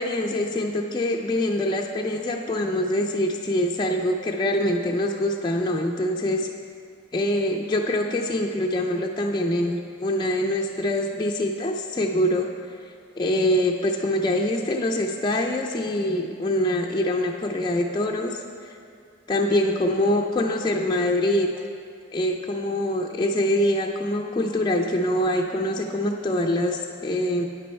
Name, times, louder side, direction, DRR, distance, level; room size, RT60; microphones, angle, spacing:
voice 1, 0.0-6.5 7.1-12.5 12.8-18.8 19.3-21.5 22.1-27.4, left 1 dB, 20° left, 1 dB, 0.4 m, -24 dB
9.7 x 8.5 x 4.3 m, 2.3 s
head